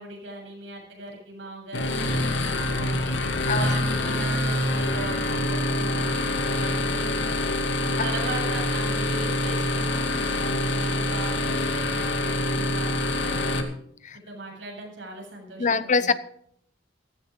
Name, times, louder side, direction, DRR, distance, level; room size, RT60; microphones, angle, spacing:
voice 1, 0.0-7.5 8.0-13.6 14.3-16.2, right 2 dB, 85° right, -1 dB, 7.9 m, -39 dB
sound 1, 1.7-13.6, left 1 dB, 75° left, 2.2 m, -25 dB
voice 2, 15.6-16.1, left 4 dB, 40° left, 14 dB, 0.8 m, -23 dB
15.5 x 14.5 x 3.9 m, 0.68 s
head